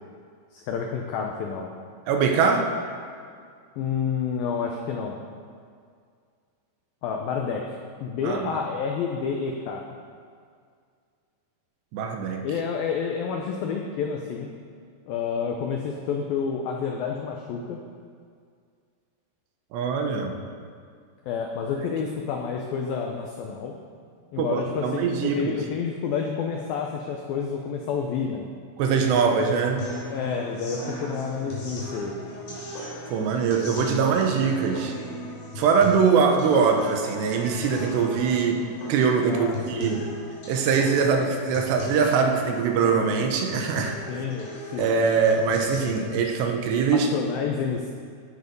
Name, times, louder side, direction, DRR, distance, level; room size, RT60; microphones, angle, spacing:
voice 1, 0.5-1.7 3.8-5.2 7.0-7.6 8.0-9.8 12.4-14.5 15.1-17.8 21.3-23.7 24.3-28.5 30.1-32.1 39.3-40.1 44.1-44.9 47.1-47.9, left 6 dB, 85° left, 1 dB, 2.0 m, -29 dB
voice 2, 2.1-2.7 8.2-8.6 11.9-12.4 19.7-20.3 24.4-25.6 28.8-29.9 33.1-35.0 35.6-38.6 38.9-40.0 40.5-44.3 44.8-47.1, right 5 dB, 75° right, 3 dB, 3.0 m, -22 dB
sound 1, 29.8-45.8, left 1 dB, 65° left, 5.3 m, -37 dB
16.0 x 7.4 x 5.3 m, 2.2 s
omnidirectional pair, 5.2 m